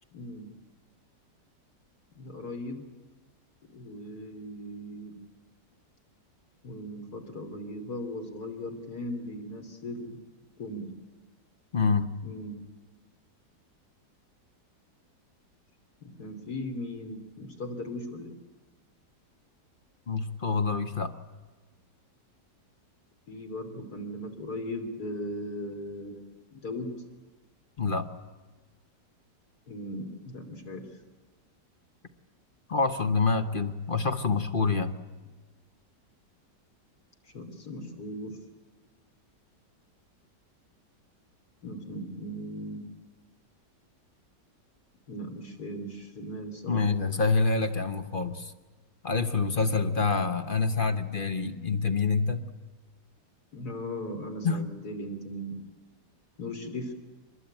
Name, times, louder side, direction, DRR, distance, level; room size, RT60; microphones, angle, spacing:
voice 1, 0.1-0.5 2.2-2.9 3.7-5.1 6.6-10.2 10.6-10.9 12.2-12.6 16.0-18.3 23.3-26.2 26.5-27.0 29.7-30.8 37.3-38.3 41.6-42.8 45.1-46.8 53.5-55.6 56.4-56.9, left 1 dB, 60° left, 5 dB, 3.6 m, -38 dB
voice 2, 11.7-12.1 20.1-21.1 27.8-28.1 32.7-35.0 46.7-48.5 49.0-52.4 54.4-54.6, left 4 dB, 35° left, 9 dB, 1.1 m, -26 dB
24.5 x 21.0 x 9.0 m, 1.3 s
omnidirectional pair, 1.9 m